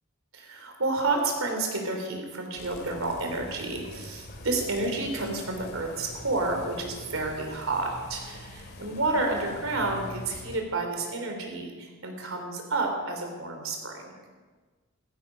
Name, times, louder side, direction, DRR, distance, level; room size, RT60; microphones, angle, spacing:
voice 1, 0.3-14.1, right 2 dB, 85° right, 3 dB, 3.3 m, -30 dB
sound 1, 2.6-10.6, left 1 dB, 50° left, 2.1 m, -44 dB
15.5 x 15.0 x 5.2 m, 1.4 s
head